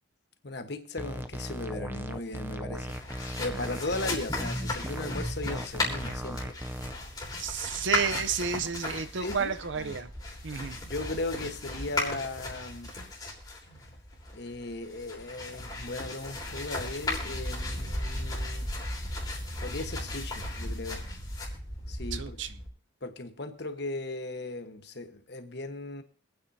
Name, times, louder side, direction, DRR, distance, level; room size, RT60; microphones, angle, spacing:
voice 1, 0.4-6.5 9.2-10.0 10.3-10.4 10.9-12.9 14.3-18.7 19.6-21.0 21.9-22.4 23.0-26.0, left 2 dB, 55° left, 1.2 m, -37 dB
sound 1, 1.0-6.9, right 1 dB, 10° right, 0.5 m, -36 dB
sound 2, 2.7-22.7, left 2 dB, 20° left, 3.9 m, -36 dB
voice 2, 7.4-10.1 10.4-10.8 22.1-22.6, right 6 dB, 65° right, 0.7 m, -31 dB
26.0 x 9.1 x 2.7 m
head